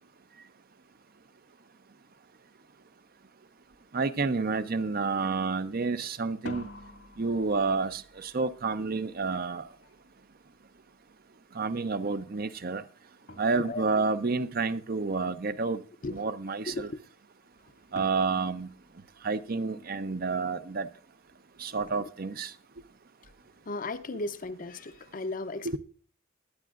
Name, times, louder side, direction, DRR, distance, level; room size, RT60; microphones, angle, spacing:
sound 1, 3.7-3.9 4.2-4.8 6.2-11.1 12.7-12.8 13.3-14.2 17.9-19.7, left 1 dB, 80° left, 1.8 m, -49 dB
voice 1, 3.9-6.7 7.2-9.6 11.5-12.8 13.4-16.9 17.9-18.7 19.2-20.9 21.6-22.5 25.6-25.8, right 4 dB, 45° right, 0.6 m, -29 dB
voice 2, 13.5-13.9 16.0-16.3 16.7-17.0 23.7-25.8, left 2 dB, 40° left, 0.6 m, -36 dB
21.0 x 9.5 x 2.4 m
head